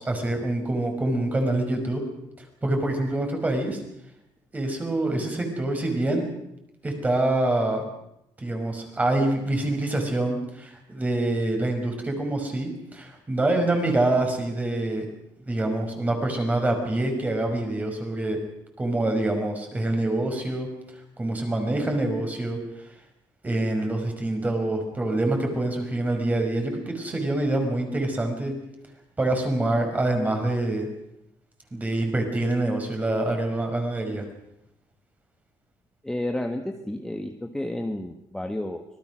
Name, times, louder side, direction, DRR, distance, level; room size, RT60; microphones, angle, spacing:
voice 1, 0.0-2.0 2.6-3.8 4.5-6.3 6.8-7.8 8.4-15.1 15.4-18.4 18.8-20.7 21.2-22.6 23.4-28.6 29.2-30.9 31.7-34.3, right 2 dB, 20° right, 4 dB, 5.3 m, -26 dB
voice 2, 36.0-38.8, left 1 dB, 5° left, 4 dB, 1.4 m, -31 dB
25.5 x 19.5 x 6.3 m, 0.82 s
cardioid pair, 135°, 9 cm